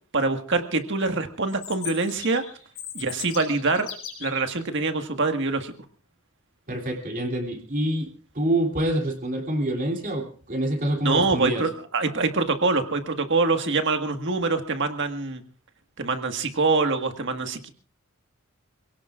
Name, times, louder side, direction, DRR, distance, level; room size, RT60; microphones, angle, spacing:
voice 1, 0.1-2.4 2.9-3.9 4.2-5.7 11.0-15.4 16.0-17.7, right 3 dB, 60° right, 6 dB, 1.7 m, -24 dB
Chirp tweet, 1.5-4.5, left 9 dB, 90° left, 5.3 m, -38 dB
voice 2, 6.7-11.6, right 1 dB, 40° right, 2 dB, 3.0 m, -26 dB
27.5 x 17.5 x 2.5 m, 0.42 s
head